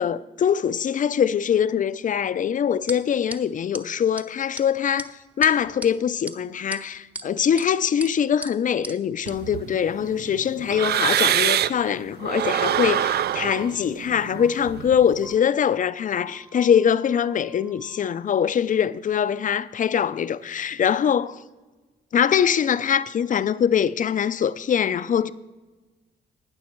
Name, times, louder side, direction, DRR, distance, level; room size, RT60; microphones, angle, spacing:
voice 1, 0.0-21.4 22.1-25.3, left 8 dB, 40° left, 0.5 m, -23 dB
sound 1, 2.9-3.0 3.3-3.4 3.7-3.8 4.2-4.3 4.5-4.7 5.0-5.1 5.4-5.9 6.3-6.4 6.7-7.3 7.6-7.7 8.0-8.1 8.4-8.5 8.8-8.9 9.3-9.4, right 1 dB, 5° right, 0.7 m, -34 dB
sound 2, 9.3-11.9 12.2-15.3, right 11 dB, 55° right, 0.4 m, -25 dB
sound 3, 13.6-13.7 14.4-14.5 15.2-15.3 16.0-18.1, right 6 dB, 75° right, 2.5 m, -50 dB
18.5 x 6.3 x 4.5 m
cardioid pair, 90°, 20 cm